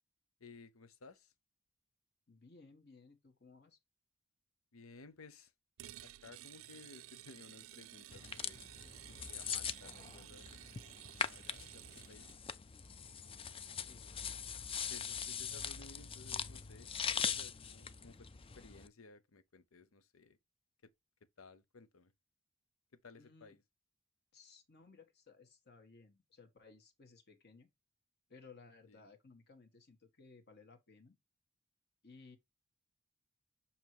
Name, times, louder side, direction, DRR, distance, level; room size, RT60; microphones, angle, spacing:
voice 1, 0.4-1.3 4.7-5.5 6.0-8.7 9.1-10.5 11.1-12.4 14.9-18.3 18.6-20.4 20.8-20.9 21.4-22.1 22.9-23.6 28.9-29.1, left 3 dB, 90° left, 0.8 m, -58 dB
voice 2, 2.3-3.8 13.8-14.1 23.2-23.5 24.3-27.7 28.3-31.2 32.0-32.4, left 4 dB, 55° left, 1.5 m, -60 dB
sound 1, 5.8-12.4, right 14 dB, 80° right, 0.4 m, -54 dB
sound 2, 8.1-18.9, left 7 dB, 25° left, 0.4 m, -42 dB
7.3 x 2.9 x 4.6 m
head